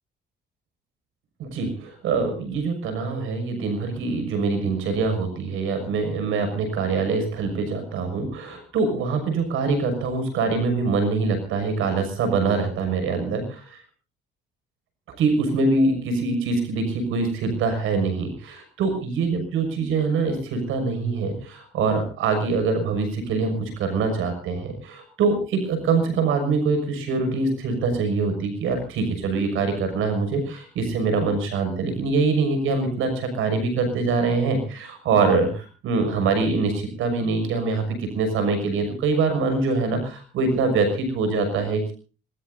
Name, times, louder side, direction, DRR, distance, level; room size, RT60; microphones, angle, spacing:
voice 1, 1.4-13.8 15.1-41.9, right 4 dB, 85° right, 8 dB, 6.4 m, -24 dB
26.5 x 20.0 x 2.7 m, 0.36 s
cardioid pair, 90°, 20 cm